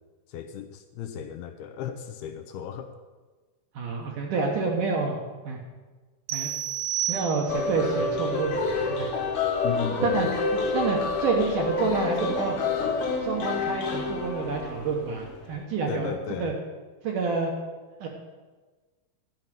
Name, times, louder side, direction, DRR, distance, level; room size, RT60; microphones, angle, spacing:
voice 1, 0.3-2.9 9.6-10.3 15.9-16.5, left 8 dB, 80° left, 6 dB, 2.4 m, -35 dB
voice 2, 3.8-5.2 5.4-5.6 6.3-6.5 7.1-9.1 10.0-10.3 10.7-12.6 13.2-16.5 17.0-17.5 18.0-18.1, right 4 dB, 65° right, 0 dB, 2.2 m, -28 dB
sound 1, 6.3-7.8, right 12 dB, 80° right, 2.3 m, -31 dB
sound 2, 7.5-15.3, left 4 dB, 55° left, 2.4 m, -28 dB
12.0 x 5.6 x 9.0 m, 1.3 s
omnidirectional pair, 4.8 m